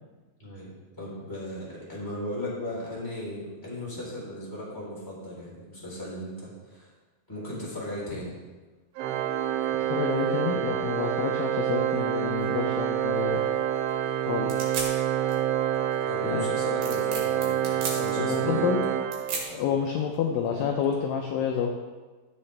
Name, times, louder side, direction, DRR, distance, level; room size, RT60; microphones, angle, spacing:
voice 1, 0.4-0.7 1.0-6.9 7.3-8.3 16.0-18.7, left 1 dB, 5° left, -7 dB, 3.0 m, -36 dB
Organ, 9.0-19.8, right 10 dB, 80° right, 2.2 m, -27 dB
voice 2, 9.8-13.4 14.3-14.7 16.2-16.5 18.2-18.8 19.5-21.7, left 7 dB, 80° left, 2 dB, 2.1 m, -28 dB
sound 1, 12.4-20.5, right 4 dB, 65° right, 3.6 m, -39 dB
14.0 x 7.7 x 3.3 m, 1.3 s
omnidirectional pair, 4.7 m